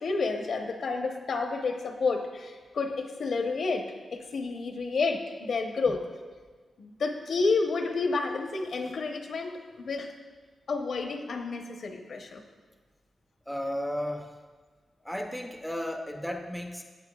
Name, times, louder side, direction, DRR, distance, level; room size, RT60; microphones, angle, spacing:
voice 1, 0.0-6.0 6.8-10.1 10.7-12.4, left 4 dB, 60° left, 4 dB, 0.9 m, -30 dB
voice 2, 13.5-14.3 15.0-16.8, equal, ahead, 3 dB, 0.5 m, -34 dB
17.0 x 7.6 x 2.3 m, 1.4 s
wide cardioid pair, 160°, 0 cm